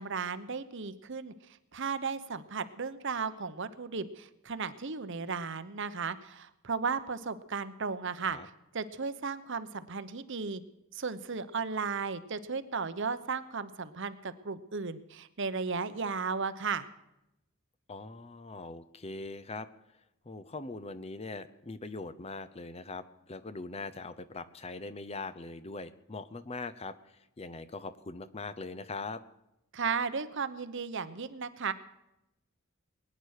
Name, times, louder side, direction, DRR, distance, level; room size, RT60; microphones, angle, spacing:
voice 1, 0.0-1.3 1.7-8.4 8.7-10.6 10.9-16.9 29.7-31.7, right 5 dB, 60° right, 13 dB, 0.9 m, -35 dB
voice 2, 17.9-19.7 20.2-29.2, left 3 dB, 30° left, 12 dB, 0.7 m, -41 dB
21.0 x 10.0 x 6.5 m, 0.87 s
head